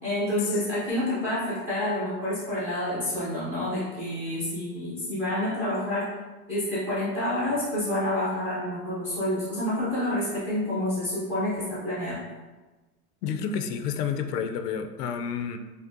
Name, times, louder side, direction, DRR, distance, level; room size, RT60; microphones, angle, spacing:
voice 1, 0.0-6.1 6.5-12.2, left 1 dB, 5° right, -10 dB, 0.4 m, -28 dB
voice 2, 13.2-15.6, left 7 dB, 75° left, 7 dB, 0.5 m, -30 dB
5.2 x 2.0 x 2.5 m, 1.2 s
supercardioid pair, 155°, 47 cm